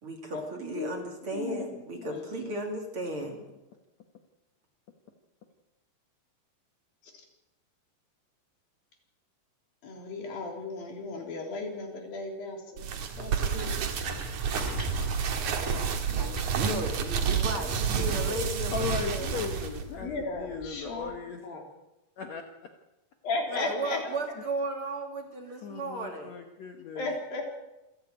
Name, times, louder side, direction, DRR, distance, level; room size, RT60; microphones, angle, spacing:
voice 1, 0.0-3.4 16.5-18.8 19.0-19.5 23.5-26.3, right 2 dB, 40° right, 2 dB, 3.3 m, -35 dB
voice 2, 0.7-1.0 1.3-2.2 7.0-7.2 9.8-12.9 13.2-13.7 19.9-21.1 21.4-21.6 23.2-24.0 27.0-27.6, left 3 dB, 85° left, 1 dB, 5.4 m, -35 dB
sound 1, 12.8-19.8, right 7 dB, 65° right, 3.1 m, -30 dB
sound 2, 13.1-21.2, left 1 dB, 10° right, 1.7 m, -40 dB
voice 3, 18.7-20.1 20.4-21.4 22.2-22.4 24.0-24.2 25.6-27.1, left 5 dB, 60° left, 4 dB, 2.3 m, -37 dB
27.5 x 10.5 x 9.1 m, 0.98 s
omnidirectional pair, 4.0 m